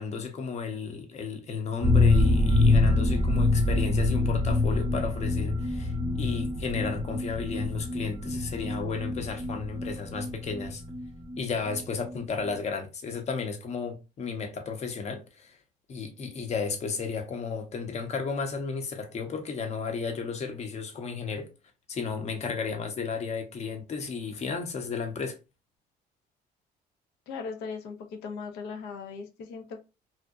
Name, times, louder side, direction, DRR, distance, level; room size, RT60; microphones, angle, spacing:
voice 1, 0.0-10.8 11.4-15.6 15.9-21.5 21.9-25.4, left 5 dB, 40° left, 0.7 m, -33 dB
sound 1, 1.8-11.4 11.7-11.8 12.1-12.2, left 2 dB, 20° right, 0.5 m, -25 dB
voice 2, 27.3-29.8, left 5 dB, 85° left, 0.6 m, -38 dB
2.7 x 2.0 x 2.3 m
cardioid pair, 110°, 17 cm